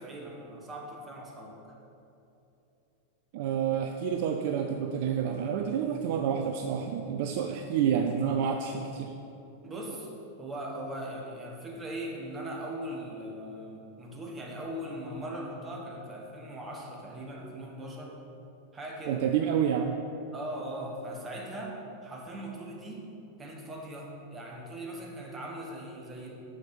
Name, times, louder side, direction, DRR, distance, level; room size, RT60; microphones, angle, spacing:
voice 1, 0.0-1.8 9.6-10.1 10.4-18.2 18.7-19.2 20.3-23.1 23.4-26.3, right 1 dB, 20° right, -1 dB, 1.4 m, -40 dB
voice 2, 3.3-9.1 19.1-20.0, right 8 dB, 50° right, 5 dB, 0.4 m, -29 dB
6.5 x 6.3 x 5.5 m, 2.8 s
figure-of-eight pair, 90°, 0 cm